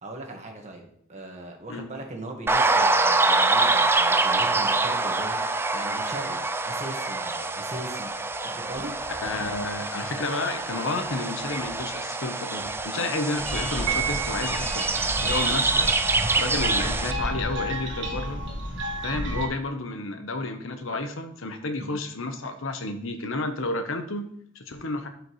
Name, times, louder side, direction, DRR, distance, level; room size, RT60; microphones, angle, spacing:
voice 1, 0.0-8.1 8.4-8.9 21.8-22.0, right 1 dB, 35° right, 2 dB, 1.5 m, -39 dB
sound 1, 2.5-17.1, right 3 dB, 10° right, 0.3 m, -25 dB
voice 2, 9.2-14.9 15.2-15.9 16.4-18.4 19.0-25.1, left 2 dB, 70° left, 7 dB, 1.0 m, -31 dB
sound 2, 13.3-19.5, equal, 60° right, 1.5 m, -31 dB
Piano, 13.9-14.8, right 10 dB, 80° right, 1.8 m, -29 dB
12.0 x 5.1 x 3.1 m, 0.65 s
head